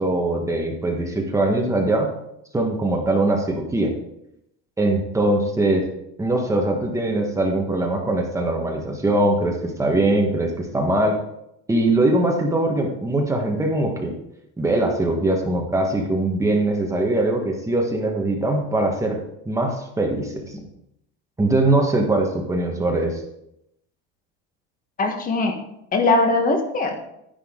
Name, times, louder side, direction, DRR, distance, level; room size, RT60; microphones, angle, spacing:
voice 1, 0.0-2.1 2.5-3.9 4.8-5.8 6.2-11.2 11.7-14.1 14.6-20.7 21.4-23.2, right 2 dB, 10° right, 1 dB, 1.4 m, -22 dB
voice 2, 25.0-25.6 25.9-26.9, left 3 dB, 25° left, 5 dB, 1.3 m, -20 dB
10.5 x 10.0 x 3.8 m, 0.80 s
cardioid pair, 160°, 33 cm